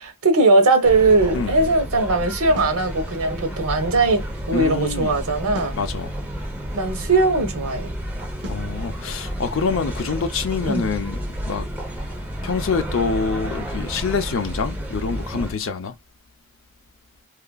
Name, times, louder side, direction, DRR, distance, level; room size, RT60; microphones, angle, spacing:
voice 1, 0.0-5.8 6.7-7.9 10.7-10.9, right 3 dB, 85° right, 0.8 m, -19 dB
sound 1, 0.8-15.5, equal, 10° right, 0.6 m, -31 dB
sound 2, 2.6-2.9 5.5-5.9 8.4-8.7, left 1 dB, 55° right, 0.6 m, -36 dB
voice 2, 4.5-5.1 5.7-6.1 8.5-11.2 11.5-11.7 12.4-15.9, left 5 dB, 60° left, 0.5 m, -26 dB
2.9 x 2.4 x 2.2 m
head